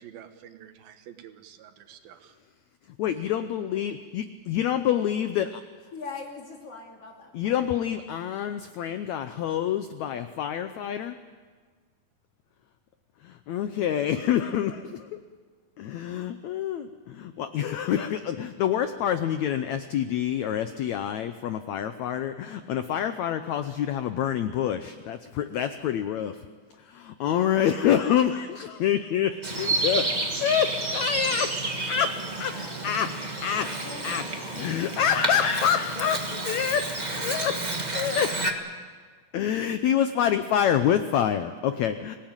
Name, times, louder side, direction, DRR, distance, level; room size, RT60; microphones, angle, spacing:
voice 1, 0.0-2.3, right 10 dB, 85° right, 8 dB, 3.1 m, -48 dB
voice 2, 3.0-5.6 7.3-11.1 13.2-15.1 15.8-26.4 26.9-30.1 30.4-31.5 31.8-32.5 32.8-33.1 33.4-33.7 34.0-34.2 34.5-37.6 37.9-38.3 39.3-42.2, left 9 dB, 75° left, 9 dB, 1.7 m, -27 dB
voice 3, 5.9-7.7 27.6-28.5 29.4-31.4 32.0-32.9 33.8-34.8, left 3 dB, 40° left, 0 dB, 3.8 m, -44 dB
Bird vocalization bird call bird song, 29.4-38.5, right 2 dB, 45° right, 0.5 m, -30 dB
25.5 x 17.5 x 9.0 m, 1.5 s
omnidirectional pair, 4.1 m